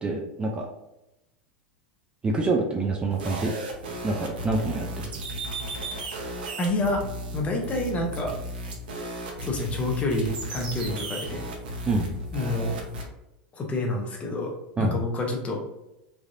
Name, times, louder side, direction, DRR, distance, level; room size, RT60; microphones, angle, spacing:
voice 1, 0.0-0.7 2.2-3.5 4.0-5.1 11.9-12.1 14.8-15.0, right 3 dB, 20° right, 0 dB, 0.5 m, -26 dB
sound 1, 3.1-13.0, right 1 dB, 80° right, 0.9 m, -35 dB
voice 2, 6.6-7.1 7.3-8.4 9.4-11.4 12.3-12.8 13.5-15.6, left 2 dB, 25° left, 2 dB, 0.8 m, -28 dB
3.3 x 2.4 x 2.6 m, 0.92 s
supercardioid pair, 115°, 5 cm